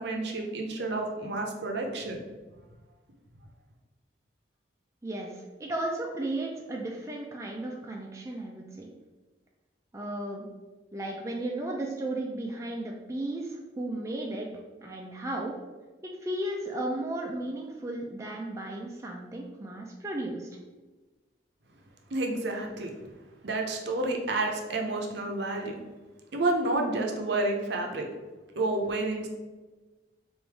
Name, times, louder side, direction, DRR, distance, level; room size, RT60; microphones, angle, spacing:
voice 1, 0.0-2.2 22.1-22.9 23.4-25.8 26.3-28.1 28.6-29.3, right 2 dB, 65° right, 2 dB, 0.6 m, -30 dB
voice 2, 5.0-8.9 9.9-10.5 10.9-14.5 14.8-15.6 16.0-20.5, right 1 dB, 15° right, -1 dB, 0.3 m, -34 dB
3.3 x 2.6 x 4.5 m, 1.2 s
head